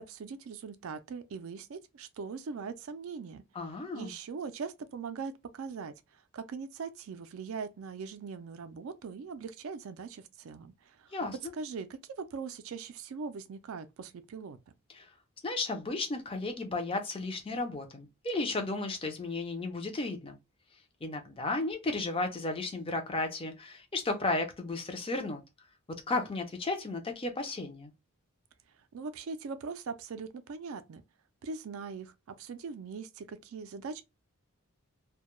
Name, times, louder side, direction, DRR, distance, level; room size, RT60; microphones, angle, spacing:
voice 1, 0.0-3.4 3.9-11.1 11.5-14.6 28.9-31.0 31.4-34.0, right 5 dB, 65° right, 0.4 m, -41 dB
voice 2, 3.5-4.1 11.1-11.4 14.9-15.1 15.4-20.4 21.0-25.4 26.1-27.9, left 2 dB, 25° left, 0.5 m, -34 dB
2.2 x 2.1 x 2.9 m
head